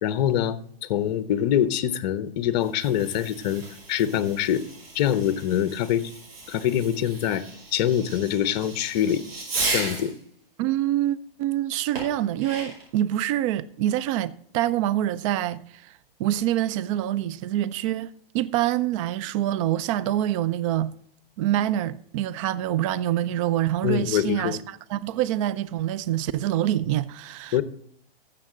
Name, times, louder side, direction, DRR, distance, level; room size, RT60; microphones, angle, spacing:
voice 1, 0.0-4.6 4.9-6.1 6.5-7.4 7.7-9.2 9.7-10.1 23.8-24.6 27.5-27.6, left 10 dB, 45° left, 0.8 m, -24 dB
Fireworks, 2.5-10.2 11.9-13.0, right 3 dB, 75° right, 5.3 m, -35 dB
voice 2, 10.6-15.9 16.2-20.9 21.4-27.6, right 12 dB, 35° right, 0.4 m, -26 dB
13.0 x 7.5 x 3.8 m
hypercardioid pair, 135°, 30 cm